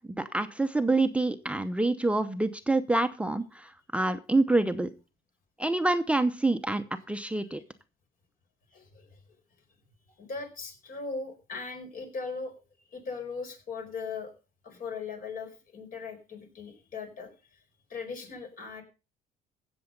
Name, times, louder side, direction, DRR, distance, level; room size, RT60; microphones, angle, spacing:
voice 1, 0.2-4.9 5.6-7.6, right 2 dB, 5° right, 8 dB, 0.7 m, -27 dB
voice 2, 8.7-9.2 10.2-12.5 12.9-14.3 14.6-17.3 17.9-18.8, left 4 dB, 55° left, 4 dB, 5.0 m, -39 dB
16.0 x 6.9 x 5.3 m, 0.32 s
cardioid pair, 110°, 17 cm